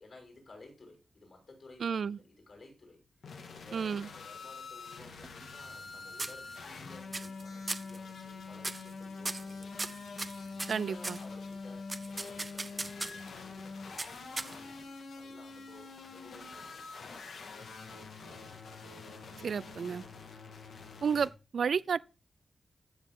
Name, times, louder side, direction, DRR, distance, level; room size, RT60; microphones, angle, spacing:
voice 1, 0.0-3.0 3.4-9.9 10.7-17.9, left 2 dB, 50° left, 6.5 m, -56 dB
voice 2, 1.8-2.2 3.7-4.1 10.7-11.2 19.4-20.0 21.0-22.0, right 6 dB, 70° right, 0.4 m, -31 dB
sound 1, 3.2-21.3, left 4 dB, 85° left, 2.0 m, -45 dB
sound 2, 5.0-5.9 6.2-6.8 7.1-7.4 7.7-8.0 8.6-8.9 9.3-11.3 11.9-13.3 14.0-14.8, right 2 dB, 25° right, 0.8 m, -38 dB
15.0 x 7.3 x 3.8 m
wide cardioid pair, 130°, 0 cm